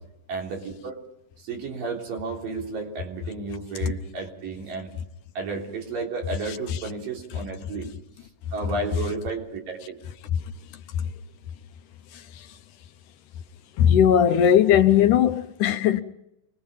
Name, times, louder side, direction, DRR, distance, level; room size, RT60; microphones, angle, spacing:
voice 1, 0.3-1.0 1.4-4.9 5.4-7.9 8.5-10.0, right 3 dB, 80° right, 5.4 m, -32 dB
voice 2, 13.8-16.0, left 9 dB, 75° left, 2.3 m, -18 dB
26.0 x 21.0 x 5.6 m
omnidirectional pair, 3.9 m